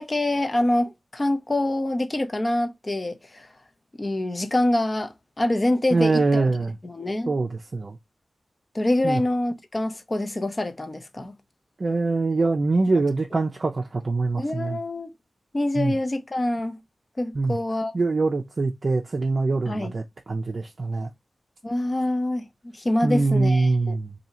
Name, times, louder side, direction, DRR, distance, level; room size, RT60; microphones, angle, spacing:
voice 1, 0.0-3.5 4.0-6.4 6.8-7.3 8.7-11.3 12.9-13.0 14.3-15.1 15.5-16.8 17.2-17.9 19.7-19.9 21.6-24.0, left 1 dB, 30° left, 0.6 m, -25 dB
voice 2, 5.9-6.8 7.3-8.0 9.0-9.2 11.8-14.8 15.8-15.9 17.3-17.6 17.9-21.1 23.0-24.1, right 3 dB, 50° right, 0.5 m, -23 dB
2.8 x 2.7 x 4.2 m
wide cardioid pair, 85°, 0 cm